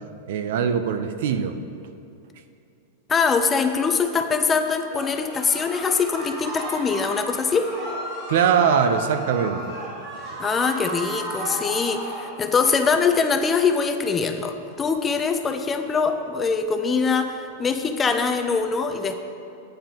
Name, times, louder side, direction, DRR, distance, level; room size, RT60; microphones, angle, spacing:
voice 1, 0.3-1.6 8.3-9.7, right 7 dB, 65° right, 9 dB, 0.5 m, -21 dB
voice 2, 3.1-7.7 10.4-19.2, left 5 dB, 15° left, 7 dB, 0.4 m, -23 dB
sound 1, 4.9-12.3, right 1 dB, 40° right, 1.9 m, -34 dB
9.0 x 7.7 x 2.9 m, 2.7 s
supercardioid pair, 155°, 0 cm